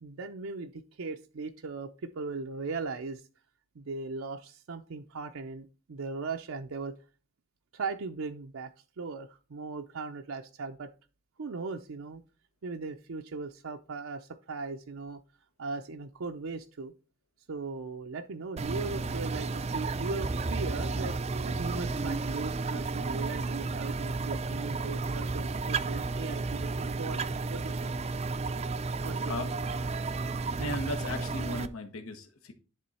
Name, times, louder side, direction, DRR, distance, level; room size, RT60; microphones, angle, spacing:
voice 1, 0.0-3.2 3.8-7.0 7.7-10.9 11.4-12.2 12.6-15.2 15.6-16.9 17.5-21.2 21.4-27.9 29.0-29.5, right 4 dB, 80° right, 4 dB, 0.5 m, -38 dB
sound 1, 18.6-31.7, right 3 dB, 30° right, 0.4 m, -32 dB
voice 2, 30.6-32.5, left 2 dB, 90° left, 6 dB, 1.1 m, -36 dB
10.5 x 3.8 x 4.1 m, 0.34 s
head